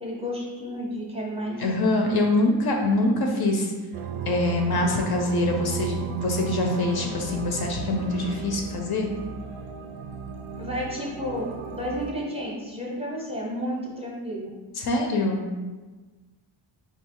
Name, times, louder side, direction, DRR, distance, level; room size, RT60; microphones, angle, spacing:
voice 1, 0.0-1.6 10.6-14.5, equal, 15° right, -4 dB, 0.6 m, -32 dB
voice 2, 1.6-3.7 4.3-9.1 14.8-15.4, left 2 dB, 55° left, 2 dB, 0.6 m, -24 dB
sound 1, 3.9-12.1, right 7 dB, 85° right, 0.6 m, -34 dB
4.3 x 2.8 x 3.6 m, 1.3 s
wide cardioid pair, 170°, 47 cm